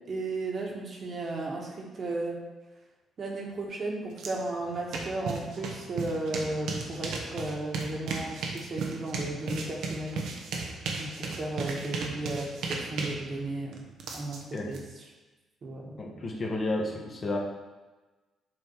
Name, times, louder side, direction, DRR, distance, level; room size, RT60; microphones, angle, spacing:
voice 1, 0.1-2.4 3.2-10.2 11.0-13.8 14.1-14.8 15.6-16.0, right 2 dB, 50° right, -1 dB, 1.5 m, -34 dB
sound 1, 4.2-4.3 4.6-14.8, right 4 dB, 80° right, 1.0 m, -35 dB
voice 2, 16.0-17.4, left 2 dB, 45° left, -1 dB, 1.4 m, -31 dB
7.8 x 3.5 x 4.7 m, 1.2 s
cardioid pair, 90°, 0 cm